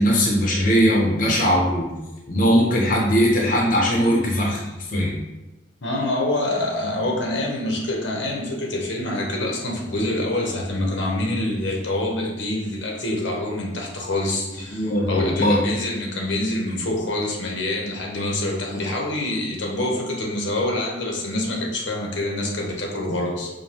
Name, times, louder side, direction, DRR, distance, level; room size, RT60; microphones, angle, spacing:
voice 1, 0.0-1.9 2.3-4.6 4.9-5.2 14.7-15.6, equal, 45° left, -2 dB, 0.6 m, -19 dB
voice 2, 5.8-23.5, left 1 dB, 90° left, -1 dB, 0.8 m, -26 dB
5.1 x 2.2 x 2.9 m, 1.1 s
head